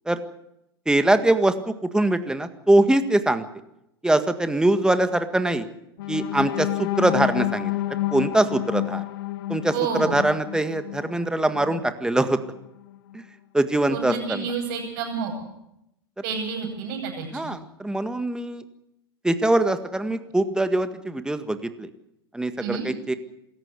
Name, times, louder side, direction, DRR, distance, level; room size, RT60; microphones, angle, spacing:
voice 1, 0.9-3.5 4.0-5.7 6.1-7.7 8.1-9.1 9.5-12.4 13.1-13.2 13.5-14.5 17.3-18.6 19.2-21.9 22.3-23.1, right 1 dB, 5° right, 10 dB, 1.7 m, -23 dB
sound 1, 6.0-11.9 12.4-12.6 12.9-13.2, left 17 dB, 65° left, 1.2 m, -30 dB
voice 2, 9.7-10.2 13.9-15.3 16.2-17.5 22.6-22.8, right 5 dB, 55° right, -4 dB, 7.8 m, -29 dB
27.0 x 14.0 x 8.3 m, 0.82 s
hypercardioid pair, 95°, 13 cm